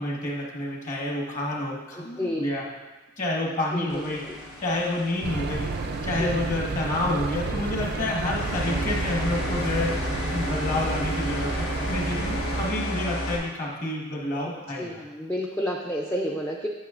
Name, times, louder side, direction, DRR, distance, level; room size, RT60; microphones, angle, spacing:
voice 1, 0.0-2.6 3.2-4.2 4.6-5.7 6.0-10.0 10.3-15.0, left 1 dB, 35° left, -2 dB, 1.3 m, -29 dB
voice 2, 1.9-2.5 3.7-4.3 6.2-6.4 14.5-16.7, equal, 10° left, -2 dB, 0.4 m, -31 dB
sound 1, 3.9-13.4, equal, 75° left, 1.1 m, -33 dB
sound 2, 5.2-12.7, right 3 dB, 45° right, 0.4 m, -31 dB
9.2 x 6.8 x 2.5 m, 1.2 s
head